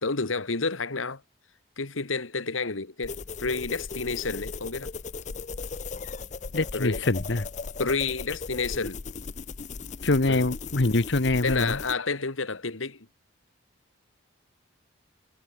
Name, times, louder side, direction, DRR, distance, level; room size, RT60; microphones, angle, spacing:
voice 1, 0.0-1.2 1.8-4.9 6.7-7.0 7.8-9.0 10.3-10.4 11.4-13.1, left 4 dB, 90° left, 1.8 m, -30 dB
sound 1, 3.0-12.0, left 4 dB, 35° left, 0.6 m, -37 dB
voice 2, 6.5-7.5 10.0-11.8, left 2 dB, 65° left, 1.1 m, -24 dB
head